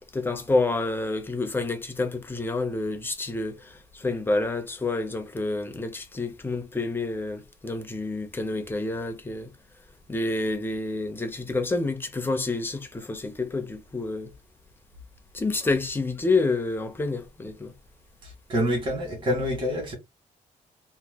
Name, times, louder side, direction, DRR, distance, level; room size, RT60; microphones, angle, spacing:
voice 1, 0.1-9.5 10.1-14.3 15.3-17.7, left 3 dB, 15° left, 0.6 m, -28 dB
voice 2, 18.2-19.9, equal, 35° right, 1.5 m, -27 dB
2.9 x 2.2 x 3.4 m
wide cardioid pair, 155°, 14 cm